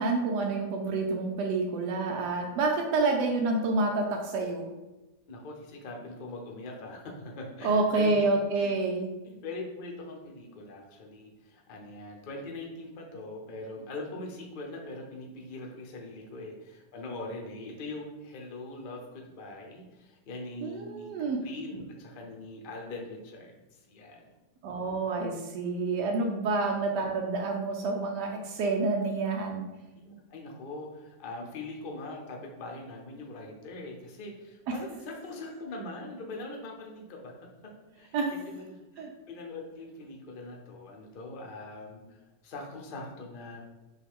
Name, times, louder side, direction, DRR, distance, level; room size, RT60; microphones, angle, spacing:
voice 1, 0.0-4.7 7.6-9.1 20.6-21.4 24.6-29.6 38.1-38.3 39.0-39.1, right 3 dB, 90° right, 1 dB, 1.2 m, -28 dB
voice 2, 5.3-8.3 8.5-8.7 9.2-21.1 21.4-24.3 29.9-37.3 37.9-43.6, left 2 dB, 45° left, 0 dB, 0.7 m, -42 dB
5.8 x 2.4 x 3.5 m, 1.1 s
omnidirectional pair, 1.7 m